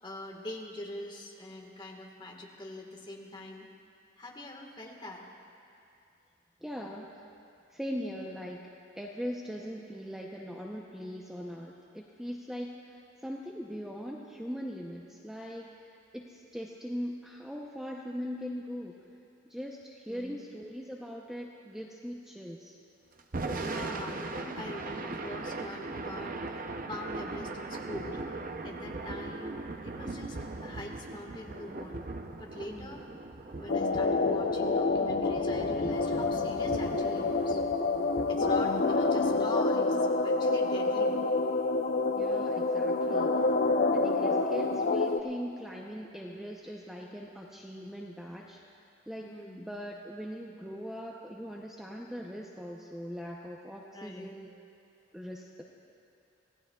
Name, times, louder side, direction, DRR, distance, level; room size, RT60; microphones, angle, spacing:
voice 1, 0.0-3.7 4.2-5.2 20.1-20.4 23.6-32.0 32.3-33.0 33.6-37.6 38.3-41.3 44.0-44.3 49.2-49.7 53.9-54.3, left 1 dB, 25° left, 0 dB, 1.5 m, -44 dB
voice 2, 6.6-7.1 7.7-8.7 9.0-12.7 13.2-15.7 16.1-19.0 19.5-22.7 32.7-33.0 42.2-43.3 43.9-48.6 49.1-49.3 49.6-54.5 55.1-55.6, equal, 5° right, -2 dB, 0.7 m, -40 dB
Thunder / Rain, 23.2-39.4, right 3 dB, 45° right, 0.6 m, -40 dB
sound 1, 33.7-45.2, left 3 dB, 50° left, 0.6 m, -27 dB
25.5 x 17.0 x 2.3 m, 2.6 s
head